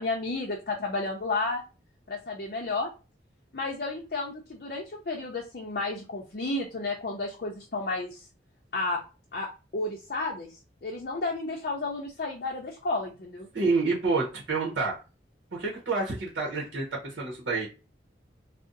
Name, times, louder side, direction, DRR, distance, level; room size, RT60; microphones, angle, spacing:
voice 1, 0.0-1.6 2.1-2.9 3.5-8.3 8.7-9.0 9.3-9.5 9.7-13.5, left 3 dB, 50° left, -1 dB, 0.5 m, -32 dB
voice 2, 13.5-15.0 15.5-17.7, right 3 dB, 70° right, -3 dB, 0.8 m, -28 dB
2.6 x 2.0 x 3.8 m, 0.31 s
head